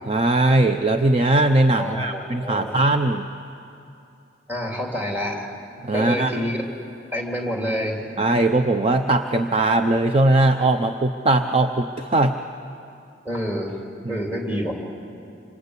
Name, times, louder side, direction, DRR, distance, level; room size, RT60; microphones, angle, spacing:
voice 1, 0.1-3.3 5.8-6.4 8.2-12.4 14.1-14.3, right 2 dB, 35° right, 6 dB, 0.7 m, -20 dB
voice 2, 1.8-2.8 4.5-5.5 5.9-6.6 7.1-8.1 13.2-13.8 14.1-14.7, equal, 10° right, 0 dB, 3.2 m, -27 dB
26.5 x 26.0 x 8.3 m, 2.7 s
head